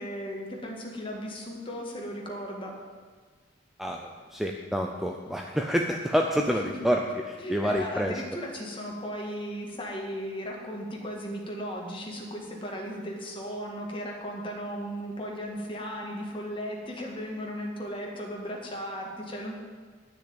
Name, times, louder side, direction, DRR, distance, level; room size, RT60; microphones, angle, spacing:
voice 1, 0.0-2.7 6.4-6.9 7.4-19.5, equal, 25° left, -1 dB, 1.9 m, -36 dB
voice 2, 3.8-8.2, equal, ahead, 2 dB, 0.5 m, -28 dB
10.5 x 6.4 x 8.7 m, 1.5 s
head